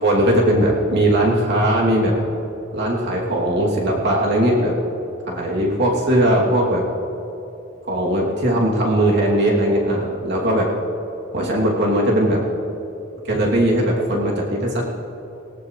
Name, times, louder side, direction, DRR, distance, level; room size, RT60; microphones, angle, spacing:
voice 1, 0.0-2.1 2.7-4.7 5.3-6.8 7.9-10.7 11.3-12.4 13.2-14.8, right 1 dB, 55° right, -3 dB, 2.9 m, -19 dB
18.5 x 18.0 x 3.3 m, 2.9 s
head